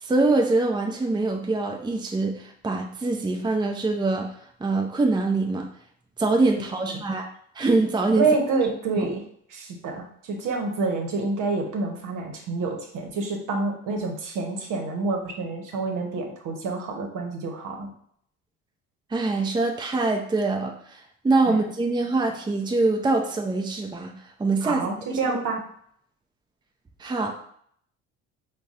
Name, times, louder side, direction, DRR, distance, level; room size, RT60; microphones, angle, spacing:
voice 1, 0.0-4.3 4.6-5.7 6.2-7.3 7.5-8.3 9.0-9.1 19.1-24.1 24.4-24.9 25.1-25.2 27.0-27.3, right 3 dB, 15° right, 2 dB, 0.6 m, -24 dB
voice 2, 8.2-9.2 9.5-17.9 21.5-21.6 24.6-25.6, right 3 dB, 65° right, 2 dB, 1.0 m, -27 dB
3.9 x 2.3 x 3.6 m, 0.65 s
supercardioid pair, 65°, 34 cm